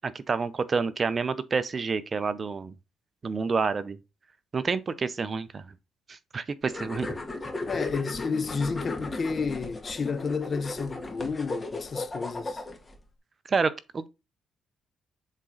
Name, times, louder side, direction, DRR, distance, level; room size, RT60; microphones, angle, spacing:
voice 1, 0.0-2.7 3.2-4.0 4.5-5.6 6.1-7.1 13.5-14.1, right 5 dB, 40° right, 0.7 m, -28 dB
sound 1, 6.7-13.0, left 2 dB, 20° left, 1.8 m, -36 dB
voice 2, 7.7-12.6, left 5 dB, 40° left, 0.8 m, -31 dB
7.5 x 3.8 x 3.9 m
cardioid pair, 90°, 0 cm